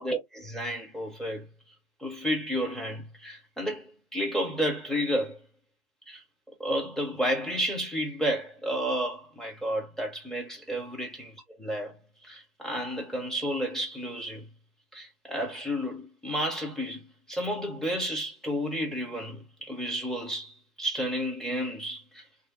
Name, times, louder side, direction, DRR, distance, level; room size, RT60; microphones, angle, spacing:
voice 1, 0.0-1.5 2.0-5.4 6.1-6.2 6.6-11.3 11.6-11.9 12.2-14.5 14.9-22.2, equal, ahead, 0.6 m, -31 dB
3.1 x 2.6 x 2.8 m
figure-of-eight pair, 110°, 44 cm